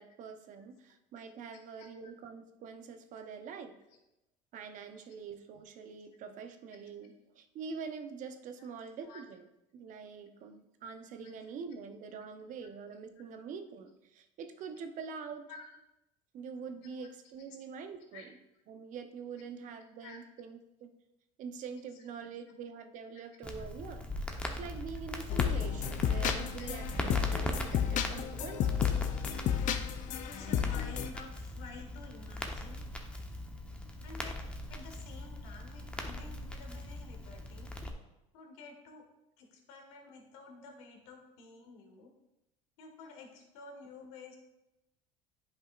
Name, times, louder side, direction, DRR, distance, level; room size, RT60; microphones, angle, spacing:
voice 1, 0.0-3.8 4.5-9.4 9.7-15.5 16.3-18.3 18.7-20.9 21.4-24.1 24.4-28.9 35.9-36.3, right 6 dB, 55° right, 7 dB, 0.8 m, -45 dB
voice 2, 1.5-1.9 9.0-9.2 11.2-11.3 13.2-13.3 15.5-15.6 16.8-17.1 18.1-18.3 19.7-19.8 20.0-20.2 24.3-24.4 26.6-26.7 27.5-27.8 30.2-32.9 34.0-37.7 38.3-39.1 39.4-42.1 42.8-44.4, left 4 dB, 80° left, 3 dB, 1.6 m, -51 dB
Crackle, 23.4-37.9, left 1 dB, 5° left, 0.9 m, -40 dB
sound 1, 25.3-31.1, left 9 dB, 50° left, 0.6 m, -32 dB
9.8 x 5.4 x 2.5 m, 0.91 s
supercardioid pair, 100°, 16 cm